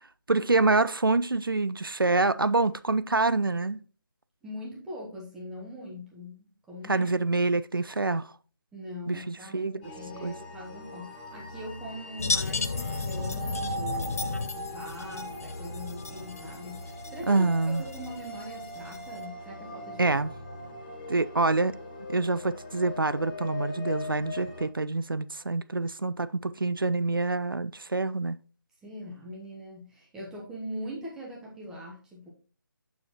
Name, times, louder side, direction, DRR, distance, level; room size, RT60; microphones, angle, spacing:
voice 1, 0.3-3.8 6.9-8.3 9.1-9.8 10.2-10.3 17.3-17.8 20.0-20.3 21.1-21.8 22.1-28.4, right 3 dB, 90° right, 0.4 m, -26 dB
voice 2, 4.4-7.1 8.7-20.0 28.8-32.3, equal, 5° right, 1.1 m, -42 dB
sound 1, 9.8-24.7, left 1 dB, 25° left, 1.1 m, -40 dB
sound 2, 12.2-19.2, left 4 dB, 45° left, 0.5 m, -34 dB
7.0 x 6.3 x 2.9 m
figure-of-eight pair, 150°, 11 cm